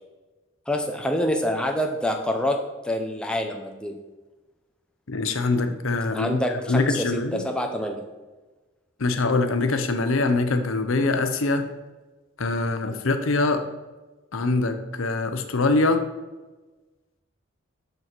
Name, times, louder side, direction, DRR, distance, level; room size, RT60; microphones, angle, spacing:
voice 1, 0.7-2.6 2.8-3.9 6.1-8.0, left 1 dB, 5° left, 3 dB, 0.7 m, -26 dB
voice 2, 5.1-6.4 6.7-7.4 9.0-11.6 12.4-13.6 14.3-16.0, left 3 dB, 80° left, 8 dB, 0.8 m, -23 dB
6.8 x 6.5 x 4.4 m, 1.2 s
head